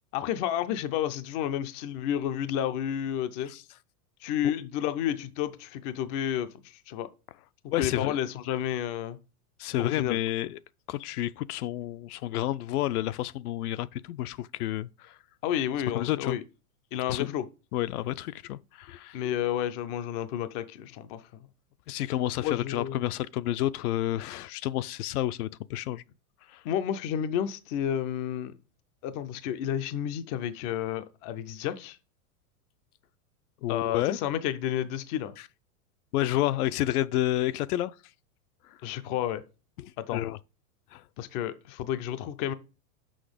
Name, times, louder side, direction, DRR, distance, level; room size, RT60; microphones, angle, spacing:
voice 1, 0.1-3.5 4.2-6.5 6.9-7.1 7.8-9.2 9.8-10.2 15.4-16.4 16.9-17.5 19.1-21.2 22.4-23.0 26.6-28.5 29.0-32.0 33.7-35.3 38.8-39.4 40.1-40.2 41.2-42.5, left 10 dB, 30° left, 0.4 m, -31 dB
voice 2, 7.7-8.2 9.6-10.6 10.9-15.2 15.9-16.4 17.1-17.3 17.7-19.2 21.9-26.0 26.5-26.6 33.6-34.2 36.1-37.9 39.8-40.4 40.9-41.0, left 14 dB, 75° left, 0.6 m, -30 dB
6.3 x 5.3 x 5.0 m
supercardioid pair, 135°, 45 cm